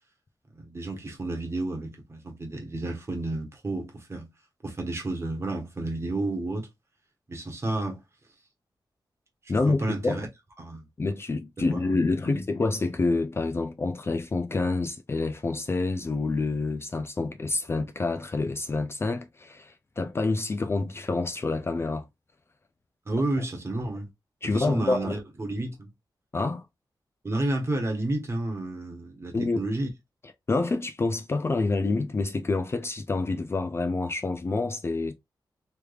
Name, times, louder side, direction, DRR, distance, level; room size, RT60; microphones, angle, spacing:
voice 1, 0.5-4.3 4.6-6.7 7.3-8.0 9.4-10.3 10.6-10.9 11.6-12.0 12.2-12.4 23.1-24.1 24.5-25.9 27.2-29.9, right 2 dB, 35° right, 1.2 m, -31 dB
voice 2, 9.5-10.2 11.0-22.1 24.4-25.2 26.3-26.7 29.3-29.7 30.5-35.1, left 3 dB, 30° left, 0.4 m, -27 dB
3.3 x 3.2 x 2.3 m
wide cardioid pair, 125°, 8 cm